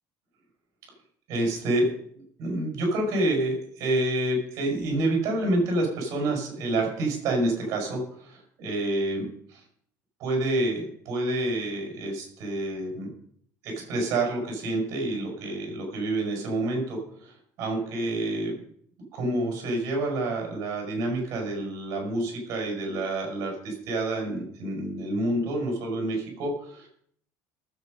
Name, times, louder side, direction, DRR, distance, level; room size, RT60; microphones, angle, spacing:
voice 1, 1.3-1.9 2.1-9.6 10.2-13.1 13.6-18.5 19.1-26.9, right 1 dB, 45° right, 1 dB, 6.7 m, -28 dB
19.0 x 8.2 x 5.5 m, 0.63 s
cardioid pair, 175°, 7 cm